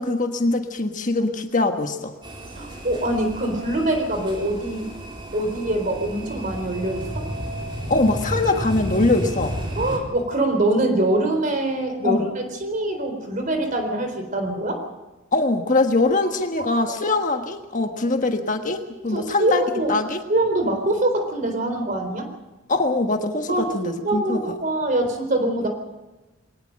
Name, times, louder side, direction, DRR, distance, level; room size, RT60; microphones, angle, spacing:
voice 1, 0.0-2.1 7.9-9.6 12.0-12.2 15.3-19.6 19.9-20.2 22.7-24.5, left 2 dB, 40° left, 5 dB, 1.4 m, -22 dB
sound 1, 2.2-10.0, equal, 25° right, 4.1 m, -32 dB
voice 2, 2.6-4.9 5.3-7.2 9.8-14.8 16.6-16.7 17.0-17.1 19.1-20.0 20.3-22.3 23.5-25.7, right 1 dB, 40° right, 6 dB, 4.0 m, -24 dB
22.5 x 18.5 x 6.6 m, 1.1 s
head